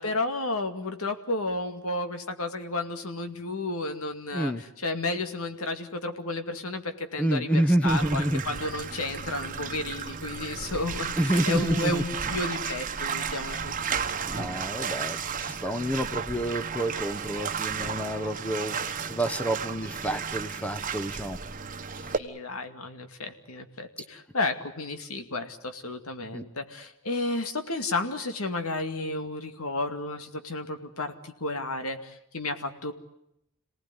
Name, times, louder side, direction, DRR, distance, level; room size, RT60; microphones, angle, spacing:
voice 1, 0.0-14.5 22.2-32.9, left 2 dB, 75° left, 7 dB, 2.4 m, -32 dB
voice 2, 7.2-8.4 11.2-12.0 14.2-21.4 26.3-26.4, right 1 dB, 5° left, 9 dB, 1.0 m, -28 dB
Bathtub (filling or washing), 7.9-22.2, right 6 dB, 40° right, 1.3 m, -33 dB
27.5 x 18.5 x 9.7 m, 0.79 s
head